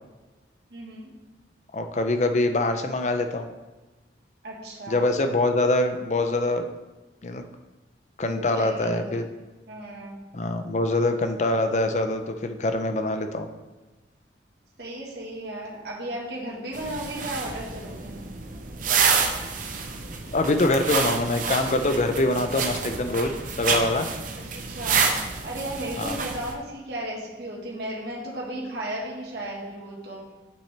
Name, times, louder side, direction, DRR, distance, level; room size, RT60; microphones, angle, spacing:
voice 1, 0.7-1.1 4.4-5.2 8.2-9.2 9.7-10.2 14.8-18.2 24.5-25.0 25.4-30.2, right 1 dB, 65° right, -4 dB, 1.6 m, -35 dB
voice 2, 1.7-3.5 4.9-6.6 7.2-7.4 8.2-9.3 10.3-13.5 20.3-24.1 26.0-26.2, left 2 dB, 40° left, 7 dB, 0.5 m, -24 dB
sound 1, 16.7-26.5, right 5 dB, 50° right, 0.8 m, -28 dB
8.3 x 6.0 x 3.4 m, 1.1 s
head